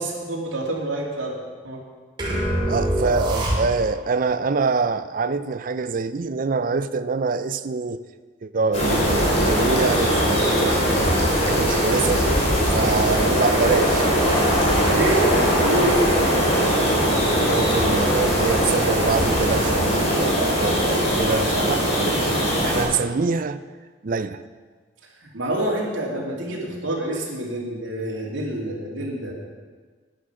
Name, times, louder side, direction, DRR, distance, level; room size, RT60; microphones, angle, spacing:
voice 1, 0.0-1.4 1.6-1.8 14.8-16.4 25.2-29.3, right 1 dB, 85° right, 2.7 m, -27 dB
sound 1, 2.2-4.1, right 1 dB, 25° right, 2.5 m, -24 dB
voice 2, 2.7-8.0 8.4-11.1 11.4-12.2 12.7-14.1 14.9-15.1 17.4-22.4 22.6-23.6 24.0-24.4, right 4 dB, 45° right, 0.5 m, -25 dB
sound 2, 8.7-22.8, equal, 35° left, 3.6 m, -20 dB
10.0 x 10.0 x 6.2 m
head